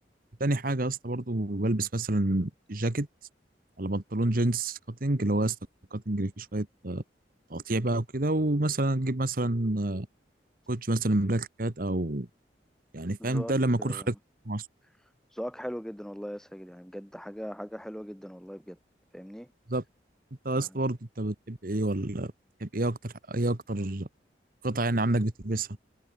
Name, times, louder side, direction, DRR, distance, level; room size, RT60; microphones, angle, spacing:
voice 1, 0.4-3.1 3.8-5.6 5.9-7.0 7.5-10.1 10.7-12.3 12.9-14.1 14.4-14.7 19.7-19.8 20.4-22.3 22.6-24.1 24.6-25.7, right 2 dB, 50° right, 1.5 m, -28 dB
voice 2, 13.2-14.2 15.3-18.8 19.1-19.5 20.6-20.8, equal, 5° left, 3.8 m, -40 dB
head